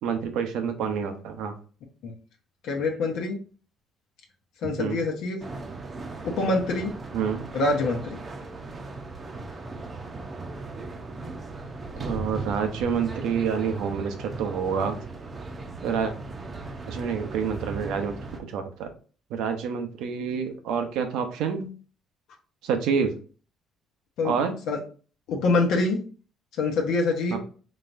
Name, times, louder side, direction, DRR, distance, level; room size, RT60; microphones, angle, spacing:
voice 1, 0.0-1.5 4.6-5.0 7.1-7.5 12.0-15.0 15.8-16.1 16.9-18.9 19.3-21.7 22.6-23.2 24.2-24.6 27.3-27.4, right 6 dB, 85° right, 6 dB, 0.7 m, -28 dB
voice 2, 2.6-3.4 4.6-5.4 6.2-6.9 7.5-8.2 24.2-24.3 24.7-24.8 25.3-26.0 26.6-27.4, left 3 dB, 75° left, 0 dB, 0.8 m, -25 dB
sound 1, 5.4-18.4, right 3 dB, 30° right, 0.7 m, -37 dB
4.1 x 3.3 x 2.5 m, 0.38 s
cardioid pair, 110°, 0 cm